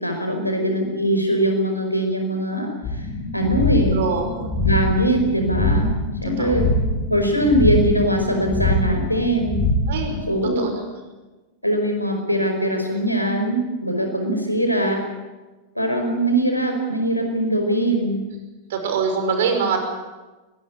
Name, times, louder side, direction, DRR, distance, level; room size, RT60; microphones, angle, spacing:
voice 1, 0.0-2.7 3.0-3.1 3.3-4.0 4.6-5.9 6.2-6.7 7.1-9.6 10.3-10.7 11.6-15.0 15.8-18.2, right 1 dB, 90° left, 4 dB, 5.1 m, -21 dB
sound 1, 2.8-10.2, left 1 dB, 30° left, 7.5 m, -23 dB
voice 2, 3.9-4.5 6.2-6.7 9.9-10.2 10.6-10.7 18.7-19.8, right 5 dB, 60° right, 5 dB, 5.9 m, -24 dB
22.5 x 20.0 x 8.8 m, 1.2 s
figure-of-eight pair, 90°, 0 cm